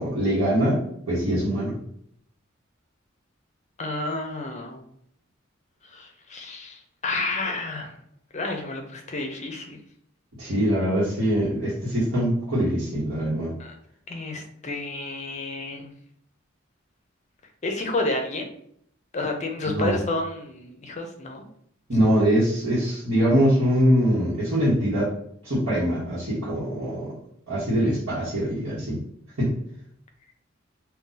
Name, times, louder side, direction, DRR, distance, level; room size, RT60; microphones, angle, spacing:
voice 1, 0.0-1.7 10.4-13.5 19.6-19.9 21.9-25.1 25.4-27.1 27.5-29.0 29.4-29.5, equal, 80° right, -9 dB, 1.0 m, -23 dB
voice 2, 3.8-4.8 5.8-7.9 8.3-9.8 13.6-13.7 14.1-15.9 17.6-18.5 19.1-21.5, left 2 dB, 35° left, 4 dB, 0.5 m, -30 dB
2.6 x 2.2 x 3.8 m, 0.68 s
head